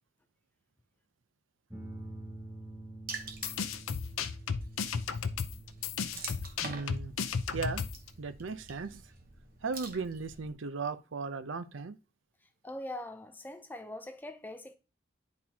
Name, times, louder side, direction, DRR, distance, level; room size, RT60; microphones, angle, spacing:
sound 1, 1.7-8.6, right 1 dB, 10° right, 1.0 m, -49 dB
Water / Splash splatter, 3.1-10.5, right 4 dB, 45° right, 1.0 m, -47 dB
sound 2, 3.3-8.1, left 6 dB, 85° left, 0.6 m, -34 dB
voice 1, 6.6-7.2 7.5-7.8 8.2-9.0 9.6-12.0, right 4 dB, 70° right, 0.6 m, -36 dB
voice 2, 12.6-14.7, left 1 dB, 10° left, 0.4 m, -42 dB
10.5 x 4.3 x 2.8 m
head